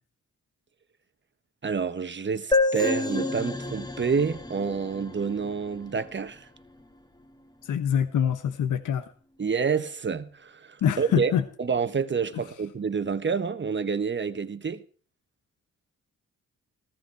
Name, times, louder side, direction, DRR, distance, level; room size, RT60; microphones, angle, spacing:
voice 1, 1.6-6.5 9.4-11.3 11.6-14.8, right 5 dB, 35° right, 1.2 m, -28 dB
sound 1, 2.5-6.1, left 3 dB, 10° left, 1.9 m, -28 dB
voice 2, 7.6-9.0 10.8-11.4, left 9 dB, 75° left, 1.1 m, -25 dB
15.0 x 14.5 x 4.7 m
cardioid pair, 65°, 31 cm